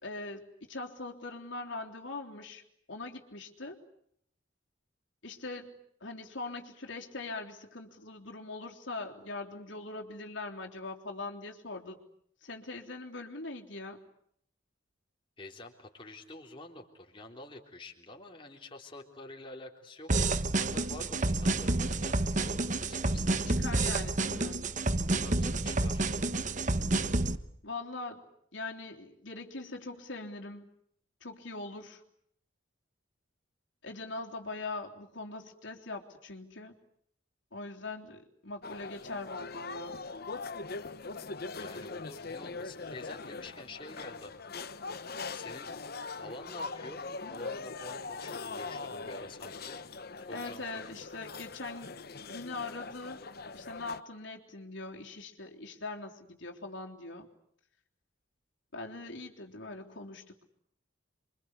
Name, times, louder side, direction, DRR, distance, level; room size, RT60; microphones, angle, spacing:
voice 1, 0.0-2.6 2.9-3.8 5.2-12.0 12.4-14.0 23.3-24.7 27.6-28.2 28.5-30.7 31.2-32.0 33.8-36.8 37.5-40.0 50.3-51.9 52.3-53.2 53.5-57.3 58.7-60.4, left 3 dB, 70° left, 1 dB, 3.6 m, -42 dB
voice 2, 15.4-23.4 25.2-26.1 41.5-45.7 46.1-49.8 50.2-51.0 51.3-51.4, left 2 dB, 25° left, 1 dB, 3.6 m, -48 dB
sound 1, 20.1-27.4, right 2 dB, 40° right, 1.1 m, -29 dB
sound 2, 38.6-54.0, left 4 dB, 50° left, 1.1 m, -41 dB
29.0 x 25.0 x 8.3 m, 0.70 s
head